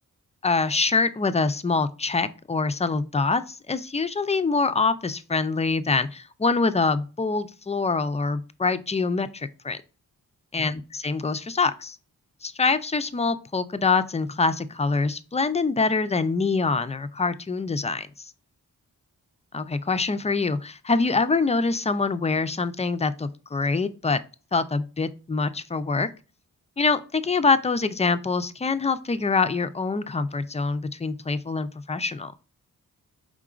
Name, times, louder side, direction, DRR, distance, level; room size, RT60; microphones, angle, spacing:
voice 1, 0.4-9.8 10.5-12.0 12.4-18.1 19.5-24.2 24.5-26.1 26.8-32.3, left 4 dB, 20° left, 12 dB, 0.4 m, -25 dB
4.9 x 3.7 x 2.4 m, 0.33 s
wide cardioid pair, 75°, 35 cm